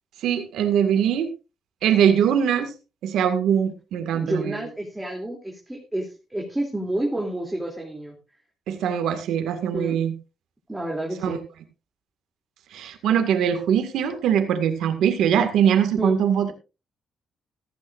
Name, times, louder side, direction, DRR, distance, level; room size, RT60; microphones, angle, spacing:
voice 1, 0.2-1.3 1.8-2.7 3.0-4.7 8.7-10.1 11.2-11.4 12.7-16.5, right 8 dB, 85° right, 7 dB, 1.9 m, -22 dB
voice 2, 4.1-8.1 9.7-10.0 10.7-11.4 16.0-16.2, right 1 dB, 10° right, 0 dB, 2.9 m, -29 dB
15.0 x 14.5 x 2.6 m, 0.30 s
cardioid pair, 105°, 0 cm